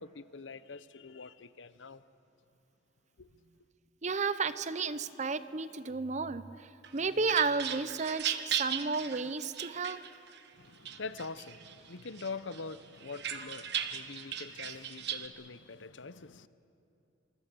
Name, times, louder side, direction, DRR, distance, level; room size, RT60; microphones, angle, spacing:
voice 1, 0.0-2.0 3.2-3.3 10.6-16.5, left 4 dB, 75° left, 0.8 m, -44 dB
voice 2, 4.0-10.0, right 4 dB, 40° right, 0.7 m, -32 dB
sound 1, 6.8-10.4 10.9-11.8 12.2-15.3, right 9 dB, 60° right, 1.2 m, -37 dB
26.0 x 25.0 x 6.8 m
head